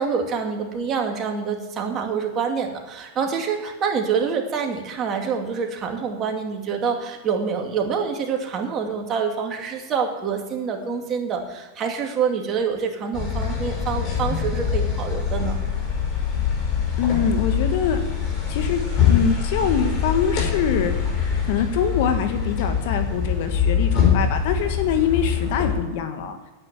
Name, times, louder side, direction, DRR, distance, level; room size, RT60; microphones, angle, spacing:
voice 1, 0.0-15.6, right 6 dB, 35° right, 3 dB, 2.4 m, -26 dB
sound 1, 13.1-25.8, left 7 dB, 40° left, 5.2 m, -23 dB
voice 2, 17.0-18.0 18.5-18.8 19.1-20.9 21.5-26.4, left 7 dB, 60° left, 7 dB, 1.6 m, -24 dB
9.7 x 8.9 x 9.1 m, 1.2 s
hypercardioid pair, 115°, 0 cm